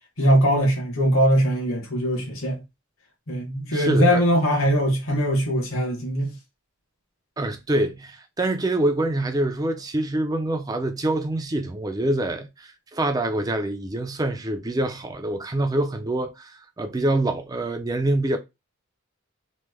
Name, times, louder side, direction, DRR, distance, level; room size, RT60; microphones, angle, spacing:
voice 1, 0.2-2.6 3.3-6.3, equal, 65° left, 1.1 m, -21 dB
voice 2, 3.7-4.2 7.4-18.4, right 1 dB, 15° right, 0.4 m, -25 dB
3.1 x 2.0 x 3.3 m
head